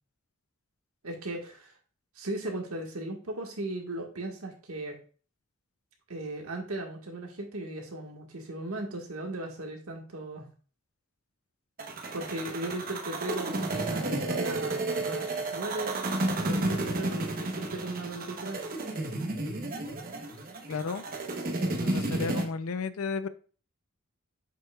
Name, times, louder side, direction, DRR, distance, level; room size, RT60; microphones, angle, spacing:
voice 1, 1.0-1.7 2.1-5.0 6.1-10.5 12.1-16.0 16.3-18.6, right 2 dB, 80° right, 2 dB, 1.5 m, -37 dB
sound 1, 11.8-22.5, right 2 dB, 40° right, 0.9 m, -32 dB
voice 2, 20.7-21.0 21.8-23.3, left 4 dB, 75° left, 13 dB, 0.5 m, -33 dB
7.8 x 5.5 x 2.3 m, 0.39 s
head